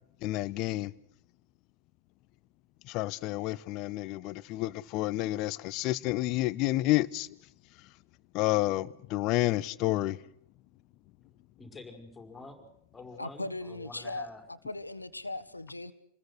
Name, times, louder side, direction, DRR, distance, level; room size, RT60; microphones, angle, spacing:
voice 1, 0.2-0.9 2.8-7.3 8.3-10.2, left 17 dB, 40° left, 0.9 m, -29 dB
voice 2, 11.6-12.7 12.9-14.4, left 3 dB, 15° left, 5.1 m, -47 dB
voice 3, 13.2-14.3 14.6-15.9, left 2 dB, 85° left, 1.5 m, -38 dB
28.0 x 21.0 x 6.4 m
figure-of-eight pair, 90°, 0 cm